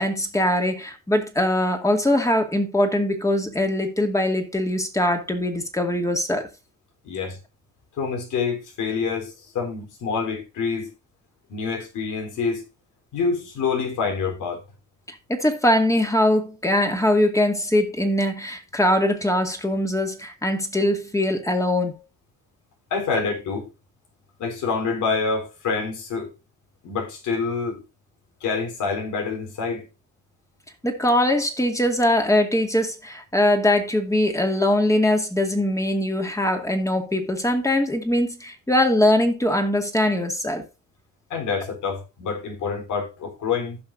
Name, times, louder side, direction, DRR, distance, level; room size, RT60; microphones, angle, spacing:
voice 1, 0.0-6.5 15.1-22.0 30.8-40.6, left 1 dB, 10° left, 2.3 m, -22 dB
voice 2, 7.0-7.4 8.0-10.9 11.5-12.6 13.1-14.6 22.9-23.7 24.4-26.3 26.8-27.8 28.4-29.9 41.3-43.8, left 5 dB, 80° left, 3.9 m, -27 dB
16.0 x 5.8 x 2.7 m
cardioid pair, 90°, 30 cm